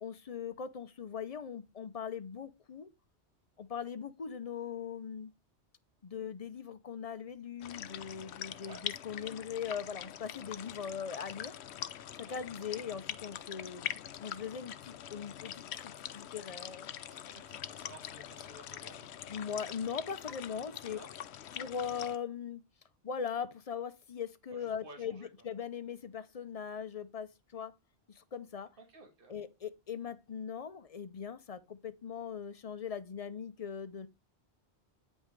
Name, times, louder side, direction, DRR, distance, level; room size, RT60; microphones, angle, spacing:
voice 1, 0.0-2.9 3.6-5.3 6.0-11.5 12.1-16.9 19.3-21.0 21.5-22.6 23.0-27.7 28.2-28.7 29.3-34.1, left 7 dB, 40° left, 0.6 m, -40 dB
sound 1, 7.6-22.2, left 10 dB, 75° left, 0.9 m, -44 dB
voice 2, 17.1-19.1 20.9-21.1 24.5-25.3 28.8-29.4, right 2 dB, 50° right, 1.9 m, -54 dB
9.2 x 5.4 x 3.2 m
omnidirectional pair, 1.2 m